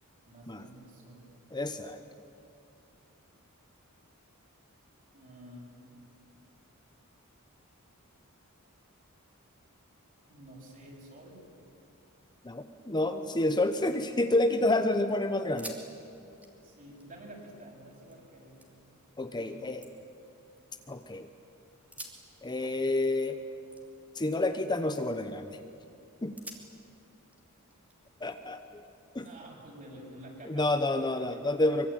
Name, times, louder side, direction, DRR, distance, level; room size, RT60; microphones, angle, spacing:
voice 1, 0.3-1.3 5.1-5.9 10.2-11.4 16.6-18.7 19.3-19.7 29.1-31.5, right 1 dB, 40° right, -1 dB, 7.4 m, -50 dB
voice 2, 1.5-2.0 12.4-15.8 19.2-19.8 20.9-21.3 22.4-23.4 24.1-25.6 26.2-26.3 28.2-28.8 29.1-29.2 30.5-31.9, left 2 dB, 20° left, 7 dB, 0.9 m, -29 dB
sound 1, 15.6-15.9 16.2-18.2 18.6-19.1 19.5-21.1 21.8-24.6 24.9-25.3 25.8-25.9 26.4-28.6 29.3-30.4, right 1 dB, 5° right, 2.9 m, -51 dB
24.5 x 23.5 x 9.0 m, 2.7 s
head